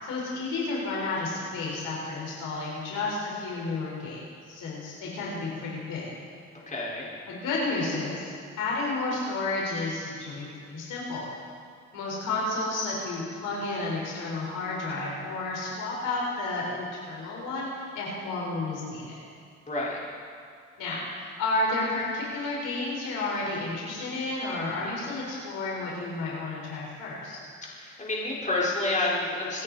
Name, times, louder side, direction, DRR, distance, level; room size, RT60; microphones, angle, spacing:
voice 1, 0.0-4.2 4.5-6.1 7.3-8.3 8.6-11.3 11.9-19.2 20.8-27.4, left 2 dB, 85° left, -4 dB, 4.8 m, -31 dB
voice 2, 6.7-7.1 19.7-20.0 27.7-29.6, left 2 dB, 25° left, -6 dB, 5.0 m, -29 dB
26.0 x 9.9 x 4.3 m, 2.2 s
cardioid pair, 90°, 30 cm